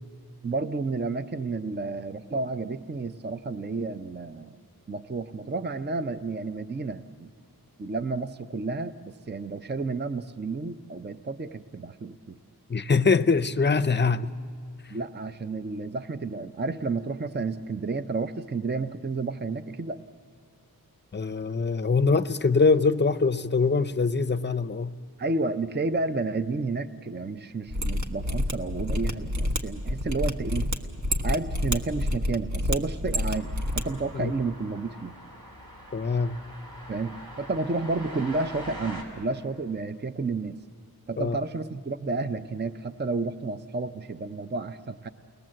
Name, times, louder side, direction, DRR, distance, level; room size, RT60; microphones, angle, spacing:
voice 1, 0.4-4.6 4.9-7.3 7.8-12.4 14.9-20.0 25.2-30.7 31.2-35.1 36.9-40.6 41.1-45.1, right 3 dB, 30° right, 0.6 m, -31 dB
voice 2, 12.7-14.3 21.1-24.9 34.1-34.3 35.9-36.4 41.2-41.4, left 4 dB, 30° left, 0.6 m, -23 dB
Mechanisms, 27.7-33.8 34.1-34.2, left 1 dB, 50° right, 1.3 m, -28 dB
sound 1, 33.3-39.0, equal, 65° right, 4.6 m, -43 dB
29.5 x 20.0 x 7.6 m
wide cardioid pair, 110°, 37 cm